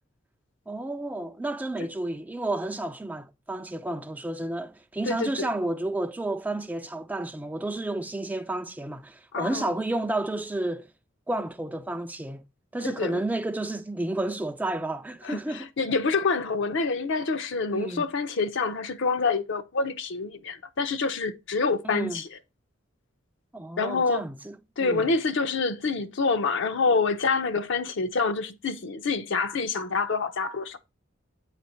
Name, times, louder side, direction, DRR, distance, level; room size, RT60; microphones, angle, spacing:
voice 1, 0.7-10.9 11.3-12.4 12.7-15.7 17.7-18.0 21.8-22.2 23.5-25.1, right 2 dB, 10° right, 0.3 m, -31 dB
voice 2, 5.0-5.5 9.3-9.7 13.0-13.2 15.2-22.4 23.8-24.2 24.8-30.8, left 4 dB, 60° left, 0.6 m, -27 dB
8.5 x 4.1 x 4.4 m
head